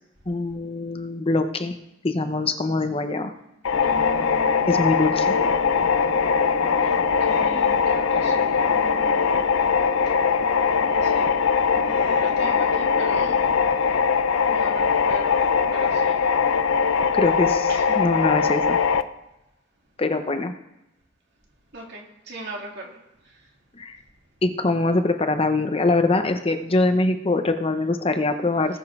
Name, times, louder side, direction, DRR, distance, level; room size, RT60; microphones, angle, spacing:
voice 1, 0.3-1.8 2.0-3.3 4.7-5.4 17.1-18.8 20.0-20.6 23.7-24.0 24.4-28.8, left 2 dB, 30° left, 8 dB, 0.7 m, -23 dB
sound 1, 3.6-19.0, left 6 dB, 70° left, 0.6 m, -21 dB
sound 2, 3.7-17.2, left 1 dB, 55° left, 1.4 m, -35 dB
voice 2, 3.8-4.8 6.8-9.4 10.8-11.3 11.7-13.4 14.5-16.2 17.7-17.8 21.7-23.0, right 1 dB, 55° right, -1 dB, 2.7 m, -39 dB
19.0 x 7.2 x 3.6 m, 0.90 s
head